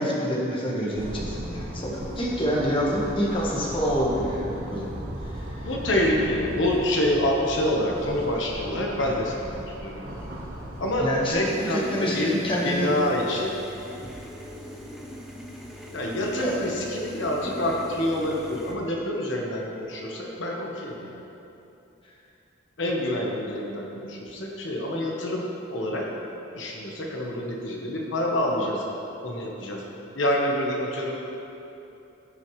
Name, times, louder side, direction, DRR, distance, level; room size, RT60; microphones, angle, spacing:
voice 1, 0.0-5.0 5.2-5.7 9.0-9.1 11.0-12.9 16.3-16.6 22.0-22.1, equal, 25° left, -4 dB, 1.2 m, -27 dB
sound 1, 1.0-11.3, equal, 45° right, 1.0 m, -37 dB
voice 2, 5.5-10.2 10.8-13.6 15.9-21.2 22.8-26.1 26.5-28.8 29.2-29.8 30.1-31.2, left 1 dB, 70° left, -1 dB, 1.1 m, -27 dB
sound 2, 11.4-18.7, equal, ahead, 0.7 m, -41 dB
15.0 x 6.1 x 3.1 m, 2.9 s
head